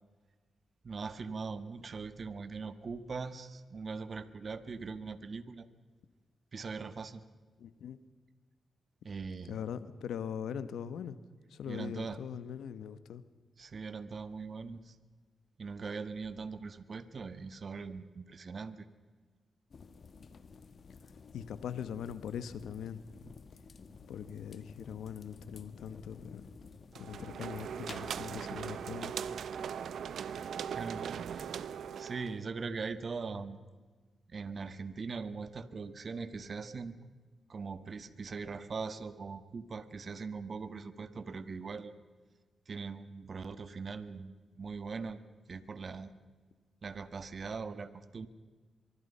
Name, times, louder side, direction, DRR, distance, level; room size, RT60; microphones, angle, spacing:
voice 1, 0.8-5.7 6.5-7.2 9.0-9.6 11.7-12.2 13.6-15.0 15.6-18.9 30.0-30.4 30.7-31.6 32.0-33.6 34.3-37.0 37.5-41.9 42.7-45.2 45.5-46.1 46.8-48.3, right 4 dB, 50° right, 12 dB, 1.6 m, -41 dB
voice 2, 7.6-8.0 9.5-11.2 11.5-13.2 21.3-23.0 24.1-26.5 26.9-29.1, left 8 dB, 85° left, 14 dB, 1.3 m, -41 dB
sound 1, 19.7-28.7, left 5 dB, 55° left, 1.6 m, -52 dB
sound 2, 26.9-32.4, right 8 dB, 75° right, 0.8 m, -39 dB
24.5 x 23.5 x 5.6 m, 1.3 s
cardioid pair, 65°, 0 cm